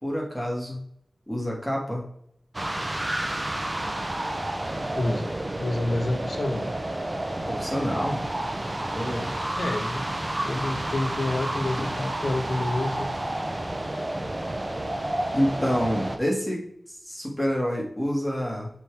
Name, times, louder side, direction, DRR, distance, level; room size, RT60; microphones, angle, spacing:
voice 1, 0.0-0.8 1.3-2.0 7.4-8.2 8.9-9.3 11.8-11.9 15.3-18.7, equal, ahead, -3 dB, 2.2 m, -28 dB
sound 1, 2.5-16.2, right 1 dB, 35° right, 0.8 m, -30 dB
voice 2, 4.9-6.7 9.5-10.0 10.4-13.1, left 2 dB, 70° left, 6 dB, 0.9 m, -28 dB
7.4 x 3.8 x 3.4 m, 0.71 s
cardioid pair, 40°, 0 cm